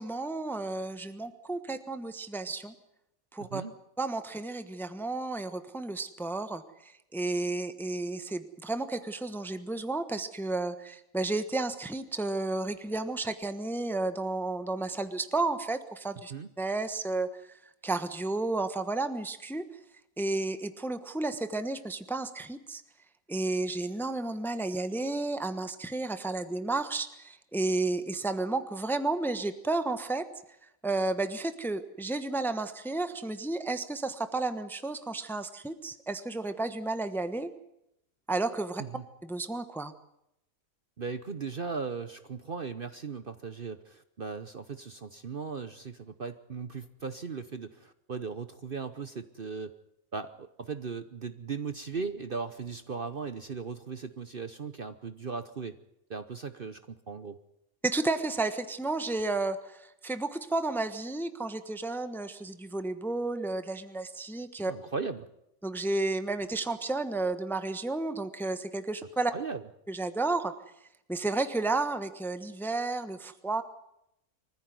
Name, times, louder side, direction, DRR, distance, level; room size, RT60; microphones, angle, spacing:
voice 1, 0.0-2.7 3.3-3.6 4.0-16.3 16.6-17.3 17.8-19.6 20.2-22.8 23.3-30.2 30.8-37.5 38.3-38.8 39.2-39.9 57.8-64.7 65.6-69.3 69.9-70.5 71.1-73.6, right 2 dB, ahead, 10 dB, 1.0 m, -32 dB
voice 2, 3.4-3.7 16.3-16.5 38.8-39.0 41.0-49.8 50.1-55.8 56.1-57.4 64.7-65.3 69.3-69.6, right 5 dB, 45° right, 11 dB, 1.0 m, -38 dB
24.0 x 15.0 x 9.5 m, 0.80 s
omnidirectional pair, 1.5 m